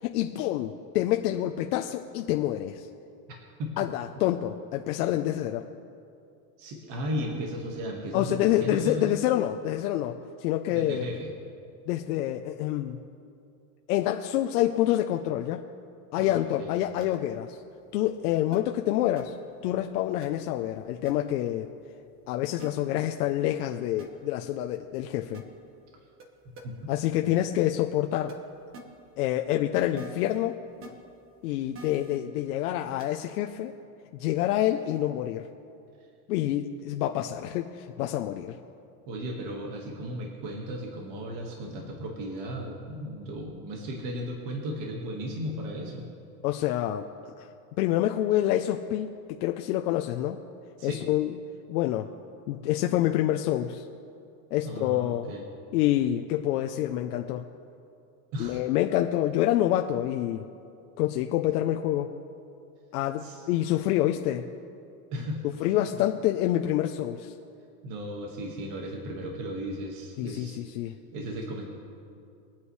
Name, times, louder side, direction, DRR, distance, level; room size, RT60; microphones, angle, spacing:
voice 1, 0.0-2.9 3.8-5.7 8.1-11.0 11.9-13.0 13.9-15.6 16.1-17.6 17.9-19.3 19.6-21.7 22.3-25.4 26.9-28.4 29.2-30.6 31.4-33.7 34.1-35.5 36.3-38.6 46.4-47.1 47.4-47.5 47.8-49.1 49.4-50.4 50.8-51.4 51.7-52.1 52.5-53.8 54.5-55.3 55.7-57.4 58.4-60.4 61.0-62.1 62.9-64.5 65.4-67.3 70.2-70.9, left 13 dB, 70° left, 4 dB, 0.8 m, -27 dB
voice 2, 6.6-9.2 10.7-11.3 16.2-16.7 26.6-26.7 39.1-46.0 50.8-51.0 54.6-55.4 58.3-58.6 63.1-63.4 65.1-65.7 67.8-70.6 71.1-71.7, equal, 45° right, 0 dB, 1.8 m, -35 dB
sound 1, 17.0-17.2 18.5-18.6 19.2-19.3 20.2-20.3 21.1-21.2 22.6-22.7 24.0-24.1 25.3-25.4 26.2-26.3 26.6-26.7 28.3-28.4 28.7-28.8 30.0-30.4 30.8-30.9 31.7-32.2 33.0-33.2, right 3 dB, 25° right, 1.3 m, -44 dB
23.0 x 8.4 x 3.2 m, 2.5 s
supercardioid pair, 155°, 47 cm